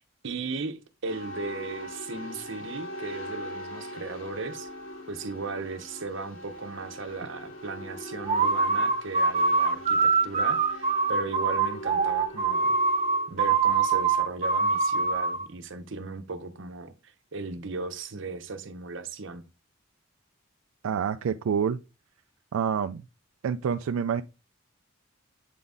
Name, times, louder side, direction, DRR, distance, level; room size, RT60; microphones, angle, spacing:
voice 1, 0.0-4.7 5.1-12.8 13.3-19.4, right 3 dB, 65° right, 0.9 m, -37 dB
sound 1, 1.0-15.3, equal, 75° left, 2.5 m, -42 dB
sound 2, 8.2-15.5, right 4 dB, 30° right, 0.5 m, -24 dB
voice 2, 20.8-21.8 22.5-23.0 23.4-24.2, right 7 dB, 90° right, 0.4 m, -27 dB
8.3 x 4.0 x 3.5 m
head